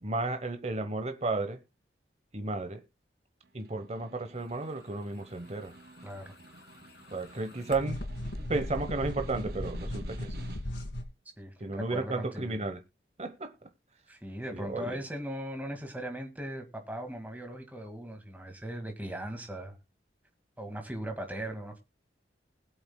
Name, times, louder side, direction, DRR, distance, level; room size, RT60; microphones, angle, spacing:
voice 1, 0.0-1.6 2.3-2.8 3.5-5.7 7.1-8.0 8.4-10.4 11.6-12.8 13.2-13.7 14.5-15.0, right 3 dB, 35° right, 1.0 m, -33 dB
Snare drum, 3.4-10.9, right 2 dB, 55° right, 1.2 m, -52 dB
sound 1, 5.9-11.0, left 1 dB, 70° left, 2.0 m, -38 dB
voice 2, 6.0-6.3 11.4-12.6 14.1-19.8 20.6-21.8, right 1 dB, 10° right, 1.9 m, -39 dB
20.5 x 7.9 x 2.2 m
head